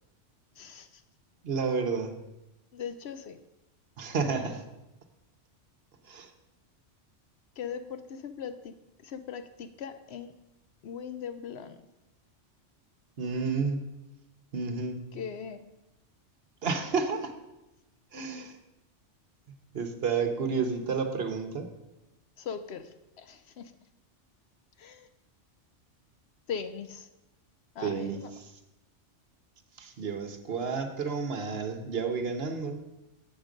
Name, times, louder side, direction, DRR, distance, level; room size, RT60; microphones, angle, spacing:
voice 1, 0.6-1.0 2.7-3.4 7.6-8.7 9.0-10.3 10.8-11.8 15.1-15.6 22.4-23.7 24.8-25.1 26.5-27.1 27.7-28.3, left 7 dB, 65° left, 9 dB, 0.8 m, -39 dB
voice 2, 1.4-2.1 4.0-4.6 6.1-6.3 13.2-13.8 14.5-15.0 16.6-17.3 18.1-18.6 19.7-21.7 27.8-28.5 29.8-32.8, right 5 dB, 60° right, 6 dB, 1.0 m, -31 dB
8.2 x 6.1 x 5.1 m, 0.95 s
omnidirectional pair, 1.3 m